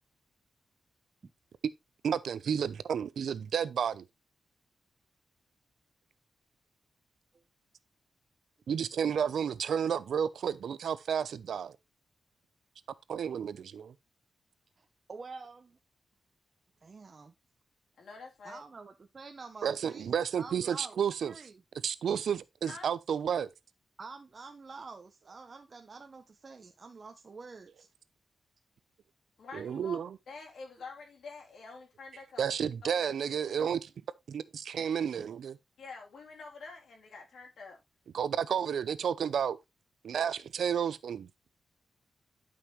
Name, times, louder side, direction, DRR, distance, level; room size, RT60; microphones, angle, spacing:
voice 1, 2.0-4.0 8.7-11.8 13.1-13.9 19.6-21.3 21.8-23.5 29.5-30.2 32.4-33.9 34.3-35.6 38.1-39.6 40.0-41.3, right 8 dB, 90° right, 0.6 m, -31 dB
voice 2, 14.8-15.8 16.8-17.3 18.4-20.1 20.4-21.5 24.0-27.9 35.2-35.3, right 4 dB, 35° right, 0.7 m, -48 dB
voice 3, 18.0-18.6 22.6-22.9 29.4-32.6 32.8-33.1 35.8-37.8, left 4 dB, 75° left, 3.4 m, -47 dB
11.5 x 5.5 x 3.1 m
wide cardioid pair, 175°, 0 cm